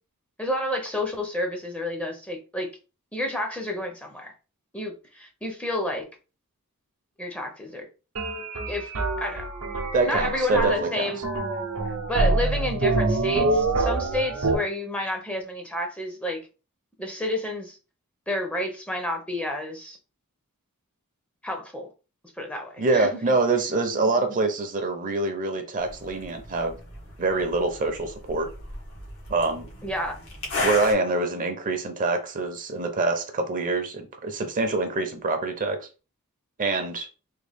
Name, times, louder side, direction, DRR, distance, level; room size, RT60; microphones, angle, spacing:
voice 1, 0.4-2.7 3.1-4.3 4.7-6.1 7.2-7.9 8.7-8.9 9.2-9.5 10.0-11.2 11.8-16.4 17.0-17.8 18.3-20.0 21.4-21.9 22.4-23.4 24.3-24.4 29.8-30.2, left 1 dB, 5° left, 0.6 m, -30 dB
sound 1, 8.2-14.6, right 2 dB, 70° right, 0.7 m, -26 dB
voice 2, 9.9-11.1 22.8-26.8 27.2-28.5 29.3-29.7 30.6-35.9 36.6-37.1, right 3 dB, 40° right, 0.6 m, -25 dB
sound 2, 25.8-30.9, left 2 dB, 85° left, 1.4 m, -35 dB
3.6 x 2.3 x 3.3 m
head